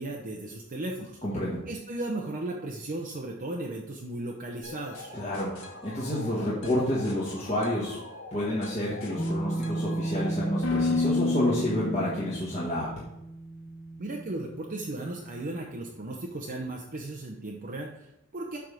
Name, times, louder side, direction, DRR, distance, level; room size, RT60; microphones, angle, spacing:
voice 1, 0.0-1.2 1.7-5.1 14.0-18.6, right 2 dB, 45° right, 0 dB, 0.7 m, -36 dB
voice 2, 1.2-1.6 5.1-8.0 8.3-12.9, left 1 dB, 30° left, -8 dB, 1.6 m, -29 dB
sound 1, 4.6-12.4, left 4 dB, 90° left, 1.6 m, -34 dB
sound 2, 9.2-15.9, right 2 dB, 15° left, 0.5 m, -35 dB
7.6 x 3.6 x 6.2 m, 0.83 s
head